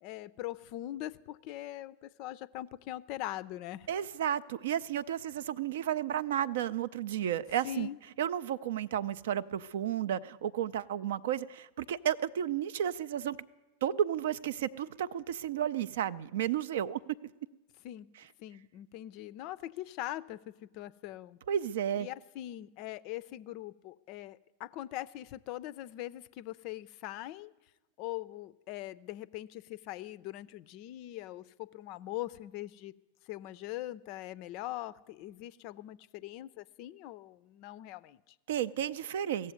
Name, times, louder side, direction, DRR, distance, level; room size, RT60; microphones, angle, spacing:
voice 1, 0.0-3.9 7.6-8.0 17.8-18.1 18.4-21.4 22.0-27.5 28.0-32.9 33.3-38.3, left 14 dB, 45° left, 18 dB, 0.4 m, -42 dB
voice 2, 3.9-7.9 8.2-13.4 13.8-17.0 21.5-22.1 38.5-39.5, right 10 dB, 55° right, 16 dB, 0.4 m, -32 dB
16.0 x 7.5 x 9.4 m, 1.1 s
figure-of-eight pair, 90°, 0 cm